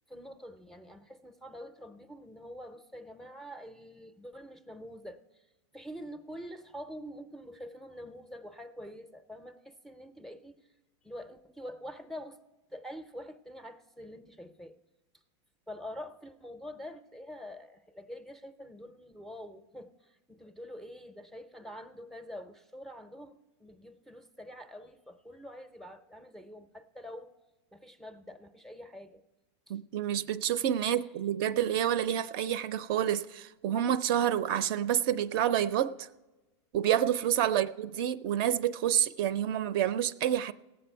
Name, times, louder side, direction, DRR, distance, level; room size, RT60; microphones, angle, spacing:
voice 1, 0.1-5.2 5.7-10.6 11.0-12.4 12.7-14.7 15.7-27.3 27.7-29.2 29.7-29.8 30.8-31.1 37.3-37.7, equal, ahead, 0.5 m, -46 dB
voice 2, 29.7-36.1 36.7-40.5, right 10 dB, 50° right, 0.5 m, -28 dB
18.0 x 7.7 x 4.4 m
supercardioid pair, 145°, 15 cm